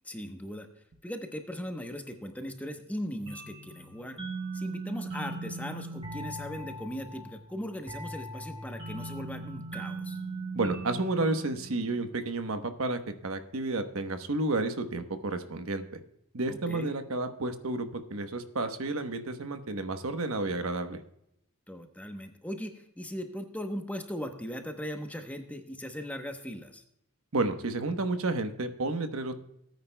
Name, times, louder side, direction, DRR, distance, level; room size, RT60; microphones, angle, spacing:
voice 1, 0.0-0.7 1.0-4.2 4.5-10.2 16.5-16.9 21.7-26.8, equal, 5° left, 5 dB, 0.9 m, -38 dB
sound 1, 3.3-12.6, right 2 dB, 25° right, 3.9 m, -40 dB
voice 2, 10.5-16.0 16.3-21.0 27.3-29.3, right 2 dB, 65° right, 7 dB, 1.0 m, -31 dB
18.5 x 9.3 x 2.2 m, 0.77 s
head